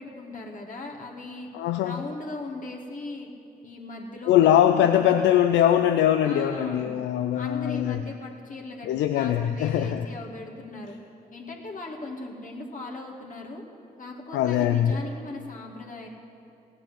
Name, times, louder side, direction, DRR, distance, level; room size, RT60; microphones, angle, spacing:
voice 1, 0.0-1.5 1.8-3.3 3.6-5.1 6.2-7.0 7.4-11.0 11.3-13.6 14.0-16.1, left 2 dB, 45° left, -1 dB, 2.3 m, -38 dB
voice 2, 1.5-2.0 4.3-8.0 8.8-10.1 14.3-15.0, left 10 dB, 85° left, 8 dB, 0.5 m, -22 dB
16.5 x 7.2 x 8.1 m, 2.6 s
supercardioid pair, 50°, 18 cm